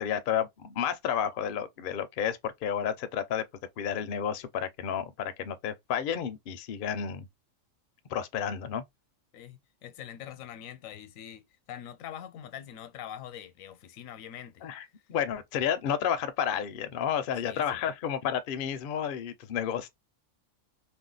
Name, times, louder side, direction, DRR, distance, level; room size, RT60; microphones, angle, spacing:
voice 1, 0.0-3.4 3.8-7.3 8.1-8.8 14.6-19.9, left 8 dB, 65° left, 0.5 m, -31 dB
voice 2, 9.3-11.4 11.7-14.6 17.4-17.8, left 10 dB, 85° left, 1.0 m, -44 dB
2.6 x 2.2 x 3.7 m
omnidirectional pair, 1.4 m